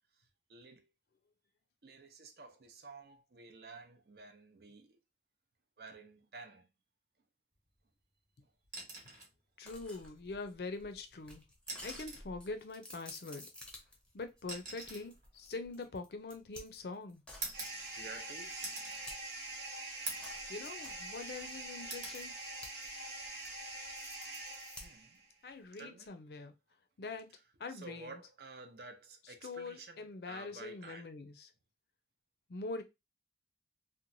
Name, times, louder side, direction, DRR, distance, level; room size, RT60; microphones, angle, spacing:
voice 1, 0.5-0.9 1.8-5.0 5.8-6.7 17.9-18.9 24.8-25.2 25.8-26.1 27.7-31.0, right 3 dB, 60° right, 0.6 m, -51 dB
sound 1, 8.6-9.4 10.8-10.9 11.6-12.3 13.5-16.6 17.4-18.2 18.6-19.0 19.5-19.6 20.1-20.4 20.9-21.5 21.9-22.2 23.7-23.9, right 2 dB, 45° right, 1.0 m, -45 dB
voice 2, 9.6-11.4 11.8-13.5 14.1-17.2 20.5-22.4 25.4-26.5 27.0-27.3 27.6-28.2 29.2-31.5 32.5-32.8, left 3 dB, 65° left, 0.5 m, -44 dB
sound 2, 9.7-19.5 20.2-22.9 23.2-25.2, left 1 dB, 5° left, 0.6 m, -53 dB
sound 3, 17.5-25.3, right 2 dB, 75° right, 1.0 m, -44 dB
2.9 x 2.2 x 2.6 m
head